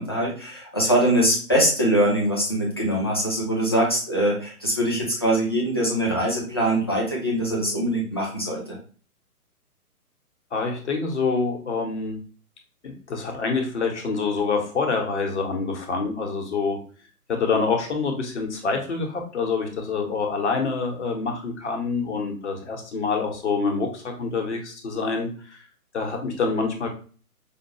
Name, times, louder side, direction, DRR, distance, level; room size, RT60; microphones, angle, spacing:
voice 1, 0.0-8.6, right 1 dB, 15° left, -4 dB, 0.5 m, -23 dB
voice 2, 10.5-12.2 12.8-16.8 17.3-25.6 25.9-26.9, left 4 dB, 50° left, 3 dB, 1.0 m, -26 dB
5.0 x 2.2 x 2.9 m, 0.40 s
figure-of-eight pair, 130°, 46 cm